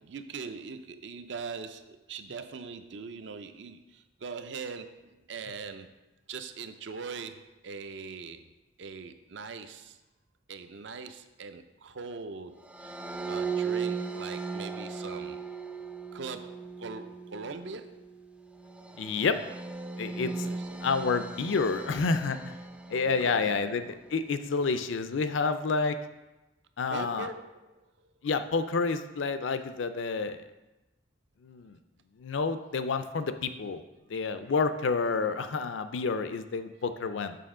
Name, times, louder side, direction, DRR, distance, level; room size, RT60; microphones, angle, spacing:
voice 1, 0.0-5.9 6.3-8.4 8.8-10.0 10.5-12.9 13.2-15.4 16.1-18.1 20.4-20.8 23.0-23.4 26.9-28.1, right 4 dB, 65° right, 9 dB, 0.5 m, -41 dB
sound 1, 12.6-24.0, right 5 dB, 5° right, 0.3 m, -38 dB
voice 2, 19.0-19.4 20.0-20.5 20.8-22.6 22.9-26.0 26.8-27.3 28.2-30.5 31.4-31.8 32.2-33.8 34.1-37.4, left 4 dB, 75° left, 10 dB, 0.5 m, -29 dB
6.8 x 6.1 x 3.7 m, 1.0 s
head